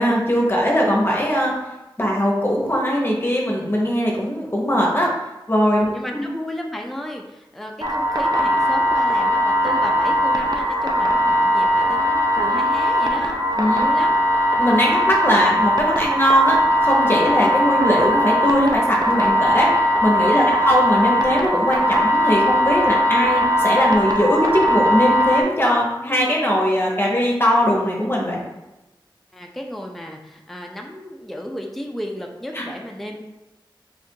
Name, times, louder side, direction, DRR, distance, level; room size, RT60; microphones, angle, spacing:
voice 1, 0.0-1.5 2.0-5.1 5.5-6.3 13.6-13.8 14.6-19.7 20.0-28.4 32.5-32.6, equal, 25° left, -2 dB, 0.8 m, -20 dB
voice 2, 5.9-13.4 13.7-14.2 20.4-20.6 29.3-33.2, equal, ahead, 1 dB, 0.4 m, -33 dB
sound 1, 7.8-25.4, equal, 50° right, 0.5 m, -19 dB
3.6 x 2.4 x 4.3 m, 1.0 s
wide cardioid pair, 70°, 9 cm